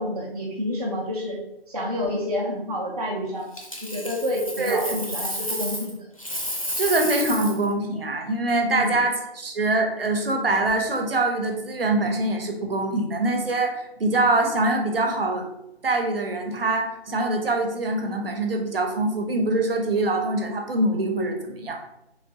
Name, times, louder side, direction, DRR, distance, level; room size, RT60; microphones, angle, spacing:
voice 1, 0.0-1.4 1.7-3.5 3.8-6.1 8.7-9.0, left 1 dB, 40° right, -5 dB, 0.5 m, -29 dB
Coin (dropping), 3.5-5.9 6.2-7.6 10.5-10.7, equal, 35° left, 0.4 m, -31 dB
voice 2, 6.8-15.4 15.8-21.8, right 2 dB, 65° right, 3 dB, 0.8 m, -24 dB
3.1 x 3.1 x 2.8 m, 0.86 s
hypercardioid pair, 175°, 31 cm